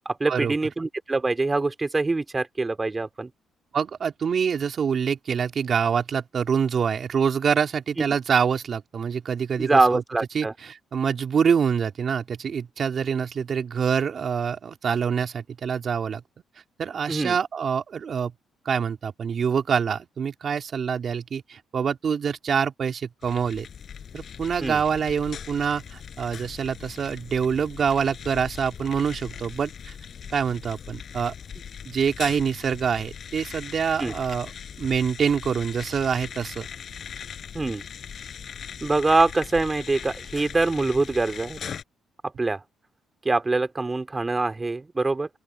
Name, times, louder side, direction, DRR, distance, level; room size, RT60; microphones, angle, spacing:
voice 1, 0.0-3.3 9.6-10.5 17.1-17.4 24.6-24.8 34.0-34.1 37.5-37.8 38.8-41.6 42.4-42.6 43.2-45.3, right 3 dB, 20° right, 3.2 m, -24 dB
voice 2, 3.7-10.0 10.3-16.2 16.8-18.3 18.6-23.7 24.1-29.9 30.3-31.3 31.8-34.5 34.8-36.7, right 7 dB, 50° right, 3.3 m, -25 dB
sound 1, 23.2-41.8, left 7 dB, 55° left, 7.3 m, -40 dB
open air
cardioid pair, 90°, 0 cm